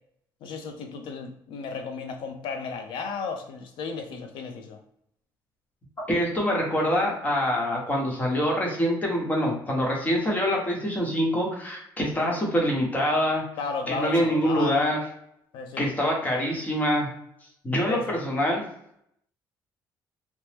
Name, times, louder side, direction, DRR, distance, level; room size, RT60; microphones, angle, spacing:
voice 1, 0.4-4.8 12.0-12.3 13.6-15.0 15.5-15.9 17.8-18.2, left 4 dB, 80° left, 6 dB, 0.5 m, -34 dB
voice 2, 6.1-13.4 13.9-15.0 15.8-17.1 17.6-18.6, equal, 20° left, -1 dB, 0.9 m, -25 dB
2.9 x 2.0 x 3.3 m, 0.74 s
cardioid pair, 155°, 8 cm